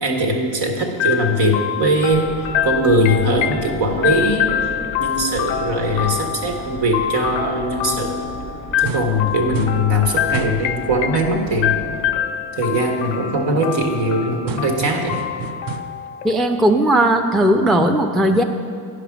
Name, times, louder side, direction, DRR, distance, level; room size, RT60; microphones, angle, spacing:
voice 1, 0.0-2.3 2.6-4.5 5.0-8.3 8.8-11.8 12.5-15.2, equal, 65° right, 2 dB, 1.5 m, -20 dB
sound 1, 1.0-16.8, left 10 dB, 85° left, 0.6 m, -26 dB
sound 2, 2.1-12.2, equal, 80° right, 1.3 m, -36 dB
sound 3, 8.8-9.2 9.5-9.9 10.3-10.7 14.5-16.1, right 5 dB, 45° right, 0.7 m, -30 dB
voice 2, 16.2-18.4, right 1 dB, ahead, 4 dB, 0.4 m, -16 dB
10.0 x 5.0 x 5.9 m, 2.3 s
hypercardioid pair, 55°, 49 cm